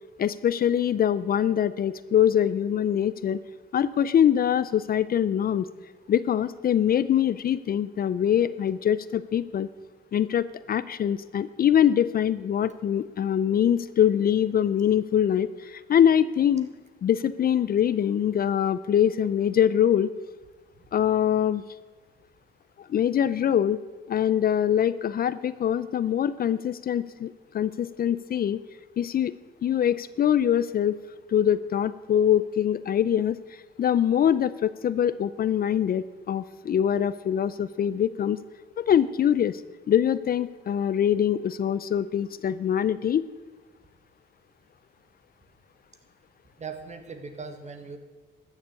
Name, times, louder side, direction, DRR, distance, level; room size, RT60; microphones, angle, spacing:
voice 1, 0.2-3.4 3.7-5.7 6.1-9.7 10.1-16.7 17.0-20.1 20.9-21.6 22.8-23.8 24.1-28.6 29.0-29.3 29.6-31.0 31.3-33.4 33.8-38.4 38.8-39.6 39.9-43.2, left 9 dB, 50° left, 16 dB, 0.5 m, -23 dB
voice 2, 46.6-48.0, right 5 dB, 35° right, 7 dB, 1.8 m, -39 dB
13.0 x 7.3 x 8.3 m, 1.3 s
cardioid pair, 90°, 20 cm